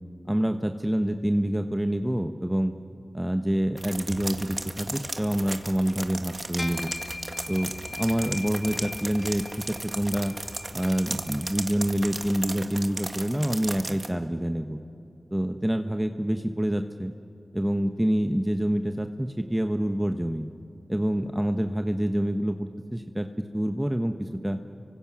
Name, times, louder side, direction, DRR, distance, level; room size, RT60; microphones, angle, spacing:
voice 1, 0.3-2.7 3.1-6.9 7.5-7.7 8.0-10.3 10.7-14.8 15.3-17.1 17.5-20.5 20.9-24.6, equal, 10° right, 6 dB, 1.1 m, -27 dB
sound 1, 3.8-14.1, right 2 dB, 30° right, 1.8 m, -36 dB
sound 2, 6.6-12.2, left 2 dB, 40° left, 1.1 m, -41 dB
30.0 x 25.0 x 6.2 m, 2.7 s
cardioid pair, 50°, 0 cm